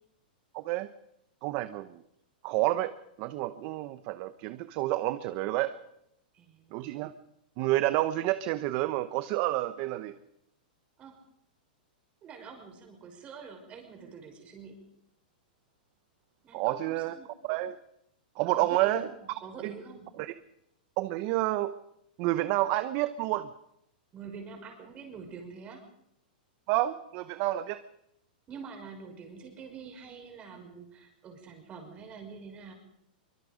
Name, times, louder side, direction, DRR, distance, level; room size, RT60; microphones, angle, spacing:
voice 1, 0.5-0.9 1.4-1.9 2.4-2.9 3.2-5.7 6.7-7.1 7.6-10.1 16.5-17.1 17.4-17.8 18.4-19.1 19.6-19.7 21.0-21.7 22.2-23.5 26.7-27.8, right 16 dB, 40° right, 13 dB, 0.9 m, -29 dB
voice 2, 6.3-6.9 11.0-11.2 12.2-14.8 16.4-17.3 18.5-20.1 24.1-25.8 28.5-32.7, right 5 dB, 25° right, 4 dB, 5.7 m, -46 dB
24.0 x 22.0 x 5.2 m, 0.77 s
hypercardioid pair, 145°, 5 cm